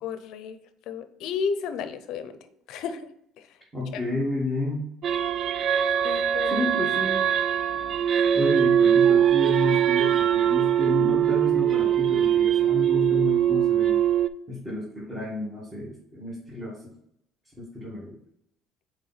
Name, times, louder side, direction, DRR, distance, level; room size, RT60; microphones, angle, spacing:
voice 1, 0.0-0.6 0.9-2.4 2.7-3.0 3.4-3.5 6.0-6.7, left 6 dB, 60° left, 10 dB, 0.7 m, -32 dB
voice 2, 3.7-4.8 6.5-7.3 8.3-14.0 14.5-16.7 17.6-18.1, left 2 dB, 15° right, -8 dB, 1.9 m, -30 dB
sound 1, 5.0-14.3, right 10 dB, 40° right, 0.3 m, -22 dB
6.5 x 4.5 x 4.2 m, 0.76 s
cardioid pair, 160°, 0 cm